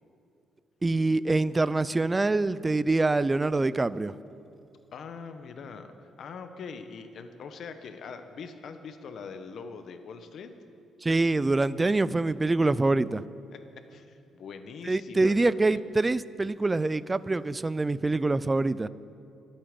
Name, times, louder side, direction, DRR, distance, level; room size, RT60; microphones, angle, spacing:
voice 1, 0.8-4.1 11.0-13.2 14.9-18.9, right 2 dB, 20° right, 17 dB, 0.4 m, -25 dB
voice 2, 4.9-5.9 6.2-10.5 13.5-13.6 13.9-15.8, left 5 dB, 65° left, 8 dB, 1.2 m, -42 dB
25.0 x 8.7 x 5.3 m, 2.8 s
cardioid pair, 90°, 0 cm